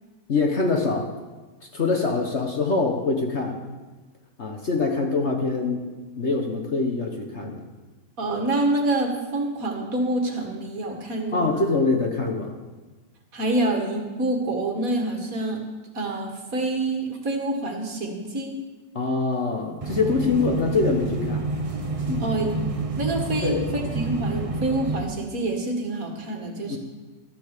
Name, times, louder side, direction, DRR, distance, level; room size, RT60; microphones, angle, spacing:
voice 1, 0.3-1.1 1.7-3.7 4.4-5.8 6.2-7.6 11.3-12.5 18.9-21.5 22.1-22.3 23.4-23.6 26.7-26.8, left 3 dB, 45° left, 2 dB, 1.3 m, -24 dB
voice 2, 8.2-11.7 13.3-15.6 15.9-18.6 22.2-22.6 23.0-26.8, right 2 dB, 50° right, 2 dB, 2.2 m, -27 dB
sound 1, 19.8-25.0, right 3 dB, 30° right, 0.7 m, -28 dB
13.5 x 10.5 x 6.7 m, 1.3 s
omnidirectional pair, 1.9 m